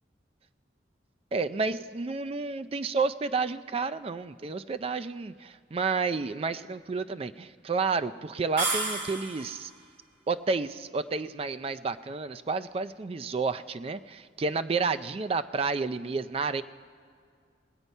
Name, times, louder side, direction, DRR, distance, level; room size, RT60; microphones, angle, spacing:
voice 1, 1.3-9.7 10.3-16.6, right 4 dB, 30° right, 11 dB, 0.4 m, -30 dB
sound 1, 8.6-9.7, right 2 dB, 85° right, 2.8 m, -31 dB
20.0 x 8.1 x 5.4 m, 2.2 s
head